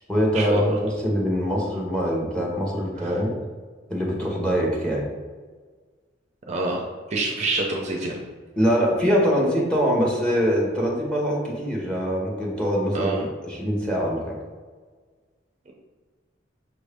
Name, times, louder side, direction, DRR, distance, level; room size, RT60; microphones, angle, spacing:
voice 1, 0.1-3.3 3.9-5.0 8.6-14.4, equal, 5° left, -3 dB, 0.9 m, -23 dB
voice 2, 6.5-6.8 7.1-8.2 12.9-13.2, right 2 dB, 35° right, -1 dB, 0.5 m, -26 dB
5.8 x 2.6 x 3.3 m, 1.5 s
head